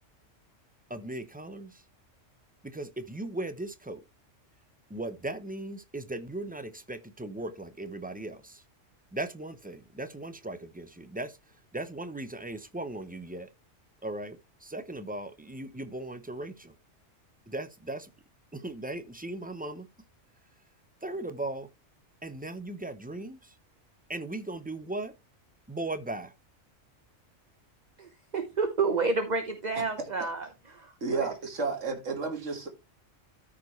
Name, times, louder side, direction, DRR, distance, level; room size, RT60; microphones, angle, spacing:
voice 1, 0.9-1.9 2.6-4.0 4.9-8.6 9.1-13.5 14.0-16.8 17.5-18.1 18.5-19.9 21.0-21.7 22.2-23.6 24.1-25.2 25.7-26.3, right 2 dB, 10° right, 0.5 m, -38 dB
voice 2, 28.0-30.5 30.7-31.3, right 4 dB, 35° right, 1.1 m, -30 dB
voice 3, 31.0-32.7, right 4 dB, 75° right, 2.3 m, -31 dB
13.5 x 5.0 x 3.1 m
omnidirectional pair, 1.3 m